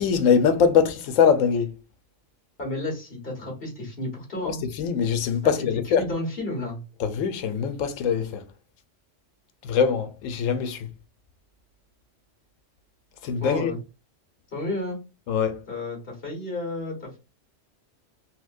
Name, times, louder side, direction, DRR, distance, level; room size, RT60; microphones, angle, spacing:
voice 1, 0.0-1.7 4.8-6.0 7.0-8.4 9.6-10.9 13.2-13.7 15.3-15.6, left 6 dB, 85° left, 1.0 m, -22 dB
voice 2, 2.6-4.6 5.4-5.5 5.8-6.8 13.4-13.8 14.5-15.0 15.7-17.2, left 1 dB, 50° left, 1.7 m, -32 dB
4.2 x 2.2 x 2.5 m
omnidirectional pair, 1.3 m